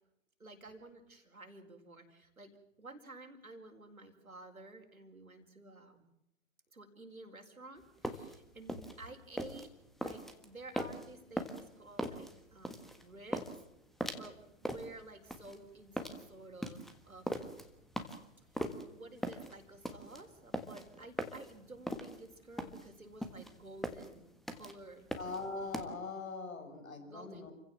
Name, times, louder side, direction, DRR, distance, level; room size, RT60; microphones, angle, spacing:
voice 1, 0.4-2.5 2.8-6.0 6.7-9.7 10.0-13.5 14.2-17.4 18.5-18.6 18.9-24.3 24.5-25.1 26.9-27.5, right 2 dB, 90° right, 4 dB, 4.8 m, -52 dB
sound 1, 7.8-25.9, equal, ahead, 1.5 m, -41 dB
voice 2, 25.2-27.5, left 3 dB, 75° left, 6 dB, 6.5 m, -42 dB
29.0 x 16.0 x 7.5 m, 0.83 s
figure-of-eight pair, 125°, 41 cm